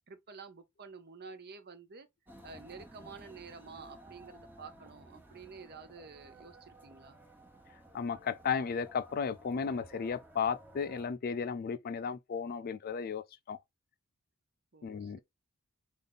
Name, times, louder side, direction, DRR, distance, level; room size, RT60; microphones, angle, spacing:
voice 1, 0.1-2.1 2.4-7.2 14.7-15.2, right 5 dB, 45° right, 0.8 m, -50 dB
sound 1, 2.3-11.1, right 1 dB, 10° right, 1.1 m, -55 dB
voice 2, 7.9-13.6 14.8-15.2, left 6 dB, 40° left, 0.3 m, -34 dB
5.2 x 2.5 x 4.0 m
head